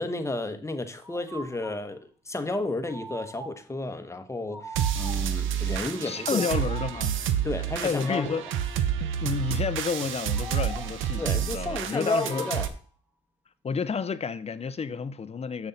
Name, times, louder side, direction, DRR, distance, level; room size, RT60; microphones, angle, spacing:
voice 1, 0.0-6.4 7.4-8.4 11.2-12.7, left 2 dB, 15° left, 1.0 m, -32 dB
sound 1, 1.0-1.9 2.8-3.7 4.5-5.4 6.3-7.1 8.0-8.7 10.3-11.1 12.0-12.8, right 2 dB, 5° right, 1.5 m, -42 dB
sound 2, 4.8-12.7, right 9 dB, 80° right, 0.7 m, -29 dB
voice 2, 6.0-7.2 7.8-8.4 9.2-12.5 13.6-15.7, left 5 dB, 30° left, 0.6 m, -30 dB
7.0 x 6.4 x 4.0 m
cardioid pair, 90°, 20 cm